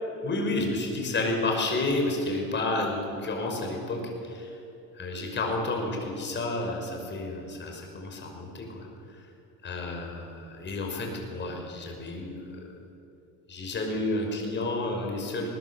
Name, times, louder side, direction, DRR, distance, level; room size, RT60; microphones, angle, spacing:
voice 1, 0.2-4.5 5.0-8.9 9.6-12.4 13.5-15.5, left 2 dB, 30° left, 1 dB, 5.7 m, -30 dB
20.5 x 19.5 x 8.1 m, 2.8 s
supercardioid pair, 125°, 38 cm